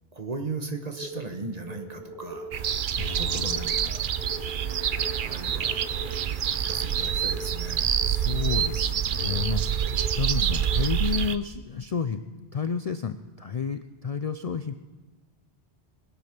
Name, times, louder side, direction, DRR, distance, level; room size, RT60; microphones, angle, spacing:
voice 1, 0.1-2.5 3.2-5.9 6.5-7.9, right 3 dB, 40° right, 5 dB, 1.3 m, -38 dB
sound 1, 0.9-10.9, right 2 dB, 20° left, 3.3 m, -41 dB
sound 2, 2.5-11.4, right 9 dB, 55° right, 0.7 m, -27 dB
voice 2, 3.0-4.0 8.0-9.9 10.1-14.7, left 6 dB, 50° left, 10 dB, 0.5 m, -31 dB
21.0 x 8.1 x 6.0 m, 1.2 s
omnidirectional pair, 1.1 m